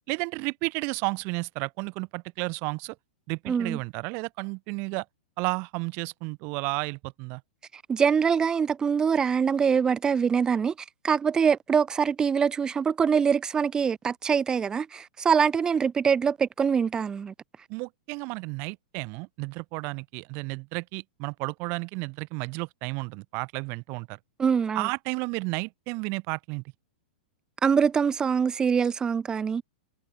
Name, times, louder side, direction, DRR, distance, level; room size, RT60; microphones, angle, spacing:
voice 1, 0.1-2.9 3.3-5.0 5.4-7.4 17.7-24.2 24.7-26.6, right 30 dB, 40° right, 1.5 m, -32 dB
voice 2, 3.5-3.8 7.7-10.7 11.0-17.3 24.4-24.9 27.6-29.6, right 6 dB, 15° right, 0.4 m, -24 dB
hypercardioid pair, 140°, 5 cm